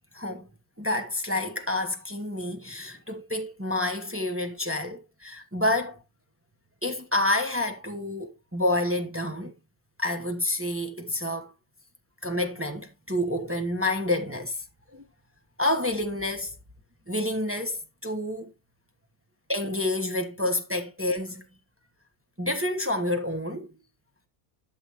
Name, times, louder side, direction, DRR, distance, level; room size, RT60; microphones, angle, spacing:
voice 1, 0.1-0.5 0.8-6.0 6.8-9.5 10.0-11.5 12.2-14.6 14.9-15.0 15.6-16.5 17.1-18.5 19.5-21.4 22.4-23.7, left 1 dB, 10° right, 0.9 m, -28 dB
12.0 x 6.8 x 3.0 m
omnidirectional pair, 1.6 m